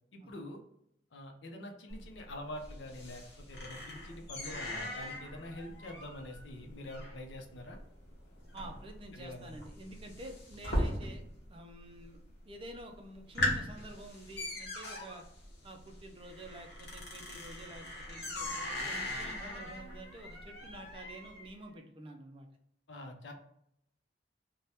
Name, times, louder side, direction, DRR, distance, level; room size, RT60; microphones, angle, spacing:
voice 1, 0.1-0.6 1.1-7.8 9.1-9.6 22.9-23.3, left 1 dB, 85° left, 4 dB, 0.6 m, -45 dB
sound 1, 1.9-11.5 11.7-12.3 12.7-12.8 13.1-21.5, left 1 dB, 65° left, 0.9 m, -39 dB
voice 2, 8.5-11.2 11.5-15.2 15.6-22.5, right 1 dB, 30° right, 4 dB, 0.4 m, -49 dB
2.7 x 2.2 x 3.3 m, 0.75 s
head